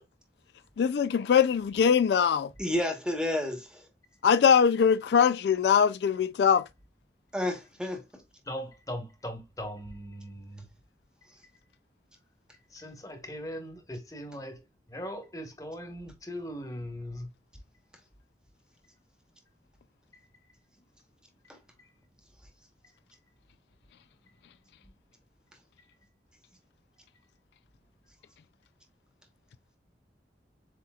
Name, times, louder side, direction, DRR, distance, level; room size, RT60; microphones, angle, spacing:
voice 1, 0.8-2.5 4.2-6.7, left 7 dB, 75° left, 0.3 m, -22 dB
voice 2, 2.6-3.8 7.3-8.0 21.5-21.6, left 1 dB, 5° right, 1.0 m, -30 dB
voice 3, 8.5-10.6 12.7-14.6 14.9-17.3, equal, 20° left, 1.2 m, -39 dB
7.6 x 2.8 x 2.3 m
head